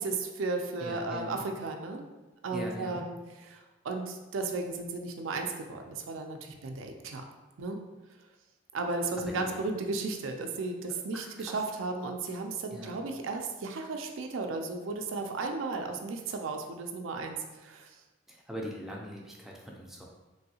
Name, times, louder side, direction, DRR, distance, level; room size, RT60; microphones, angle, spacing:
voice 1, 0.0-2.0 2.4-3.2 3.5-7.2 7.6-7.8 8.7-18.0, right 3 dB, 85° right, 4 dB, 0.4 m, -34 dB
voice 2, 0.8-1.4 2.5-3.0 9.2-9.6 10.9-11.6 12.7-12.9 18.3-20.0, equal, ahead, -2 dB, 0.4 m, -41 dB
3.1 x 2.7 x 2.7 m, 1.2 s
head